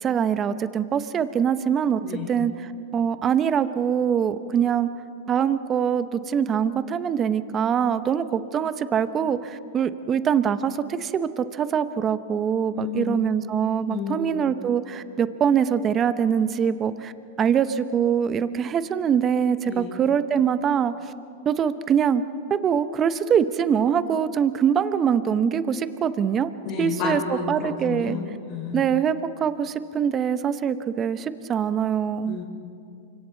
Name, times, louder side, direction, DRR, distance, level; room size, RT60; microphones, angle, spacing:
voice 1, 0.0-2.0 2.3-4.9 5.3-17.1 17.4-20.9 21.4-22.2 22.5-26.5 26.8-28.2 28.7-32.4, right 8 dB, 25° right, 12 dB, 0.9 m, -23 dB
voice 2, 2.0-2.3 12.7-13.2 13.9-14.4 19.7-19.9 26.6-28.9 32.2-32.4, left 5 dB, 50° left, -3 dB, 5.8 m, -31 dB
28.5 x 25.0 x 4.0 m, 2.5 s
hypercardioid pair, 125°, 0 cm